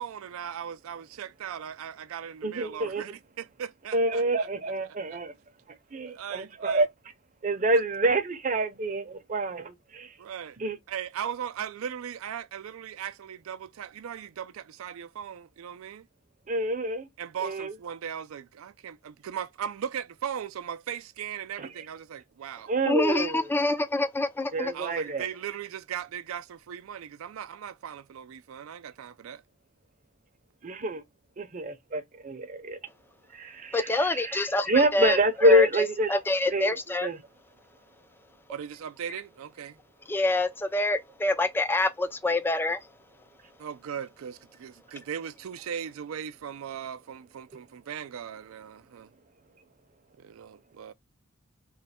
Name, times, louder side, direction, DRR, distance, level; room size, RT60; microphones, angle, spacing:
voice 1, 0.0-4.5 5.1-5.2 6.1-6.9 7.7-7.8 10.2-10.6 10.9-16.1 17.2-22.7 24.7-29.4 38.5-39.8 43.6-49.1 50.2-50.9, right 8 dB, 80° right, 0.4 m, -38 dB
voice 2, 2.4-3.1 3.9-5.3 5.9-6.9 7.4-10.1 10.6-10.8 16.5-17.1 17.4-17.7 21.6-21.7 22.7-23.5 24.5-25.3 30.6-31.0 31.4-32.8 33.3-36.1 36.5-36.7 37.0-37.2, right 1 dB, 40° right, 0.6 m, -27 dB
voice 3, 22.9-24.7 33.7-37.1 40.1-42.8, left 2 dB, 10° left, 0.3 m, -26 dB
3.1 x 2.2 x 4.1 m
head